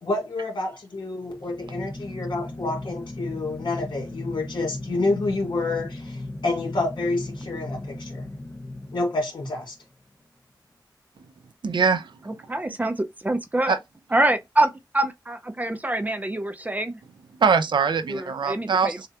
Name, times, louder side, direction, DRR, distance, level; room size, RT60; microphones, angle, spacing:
voice 1, 0.0-8.3 8.9-9.7, left 2 dB, 80° left, 2.1 m, -28 dB
sound 1, 1.2-9.6, left 2 dB, 25° left, 0.8 m, -36 dB
voice 2, 11.6-12.2 13.7-13.8 17.4-19.1, right 5 dB, 80° right, 0.6 m, -22 dB
voice 3, 12.5-13.8 14.1-17.0 18.1-19.0, right 1 dB, 20° right, 0.6 m, -25 dB
6.6 x 2.4 x 2.9 m
wide cardioid pair, 110°, 8 cm